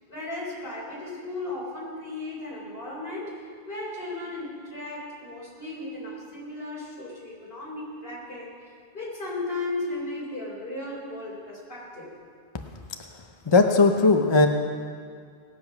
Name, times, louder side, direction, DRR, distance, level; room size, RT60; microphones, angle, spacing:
voice 1, 0.1-3.4 3.7-8.5 8.9-12.1, left 2 dB, 70° left, -5 dB, 3.8 m, -35 dB
voice 2, 13.5-14.5, left 3 dB, 30° left, 5 dB, 0.6 m, -18 dB
19.0 x 7.9 x 5.8 m, 2.1 s
omnidirectional pair, 1.0 m